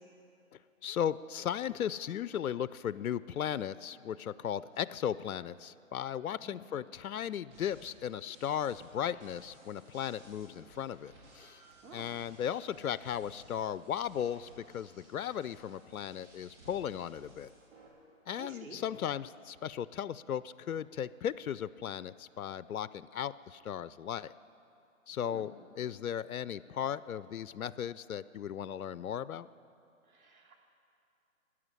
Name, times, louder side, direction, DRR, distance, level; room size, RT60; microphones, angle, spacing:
voice 1, 0.8-11.6 11.9-17.5 18.3-24.3 25.1-29.5, left 9 dB, 85° left, 17 dB, 0.6 m, -36 dB
sound 1, 7.5-17.9, right 1 dB, 55° right, 4.0 m, -58 dB
voice 2, 18.3-18.8 25.2-25.4 30.1-30.6, right 3 dB, 80° right, 1 dB, 2.7 m, -50 dB
13.5 x 9.8 x 10.0 m, 2.7 s
hypercardioid pair, 150°, 42 cm